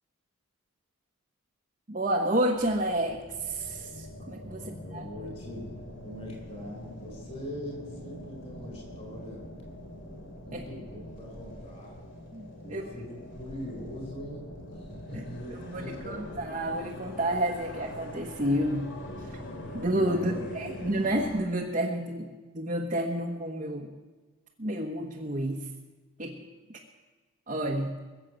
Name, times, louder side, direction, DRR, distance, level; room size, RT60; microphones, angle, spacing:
voice 1, 1.9-4.6 4.9-5.0 10.5-10.6 12.3-12.8 15.1-15.2 15.6-18.9 19.7-23.9 24.6-25.6 26.2-26.4 26.7-26.8 27.5-27.9, right 1 dB, 35° right, -1 dB, 1.2 m, -30 dB
sound 1, 2.5-21.4, left 1 dB, 55° left, 2.5 m, -43 dB
voice 2, 4.5-5.7 6.0-9.4 10.4-12.0 12.6-16.4 20.2-20.4, equal, 30° left, 1 dB, 4.9 m, -42 dB
21.5 x 7.6 x 7.7 m, 1.3 s
head